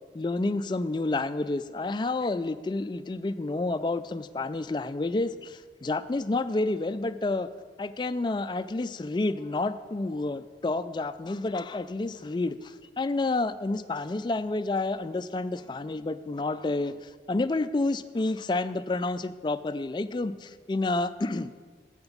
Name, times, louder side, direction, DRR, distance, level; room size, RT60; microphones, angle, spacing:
voice 1, 0.1-7.5 7.8-21.5, left 2 dB, 25° left, 12 dB, 0.3 m, -29 dB
7.9 x 7.9 x 7.2 m, 1.5 s
head